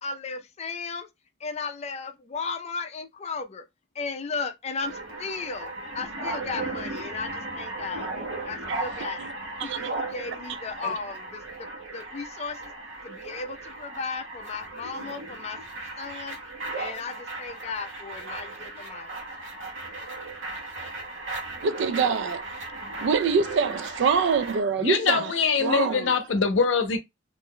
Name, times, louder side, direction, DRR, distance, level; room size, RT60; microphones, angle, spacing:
voice 1, 0.0-1.1 1.4-3.6 3.9-8.1 8.4-9.3 9.6-12.7 13.0-15.6 16.0-16.4 16.8-19.2, left 4 dB, 35° left, 0.4 m, -35 dB
sound 1, 4.8-24.6, right 2 dB, 90° right, 1.0 m, -36 dB
voice 2, 21.6-22.4 23.0-25.2 25.6-26.0, right 5 dB, 70° right, 0.4 m, -25 dB
voice 3, 24.7-27.0, left 5 dB, 80° left, 0.6 m, -23 dB
2.5 x 2.1 x 3.6 m
head